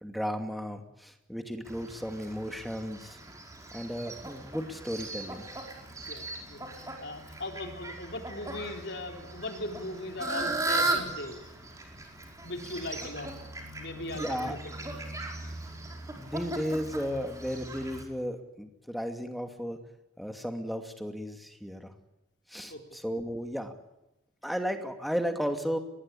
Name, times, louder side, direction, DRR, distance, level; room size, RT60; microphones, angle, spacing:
voice 1, 0.0-3.2 3.7-5.5 14.1-14.6 16.1-19.8 20.2-21.9 22.5-23.7 24.4-25.8, equal, ahead, 5 dB, 2.5 m, -34 dB
Fowl, 1.6-18.0, right 2 dB, 15° right, 4.9 m, -37 dB
voice 2, 6.1-11.5 12.4-13.3 13.8-14.9 22.7-23.0, left 1 dB, 55° left, 4 dB, 4.2 m, -39 dB
24.0 x 20.0 x 8.7 m, 0.92 s
head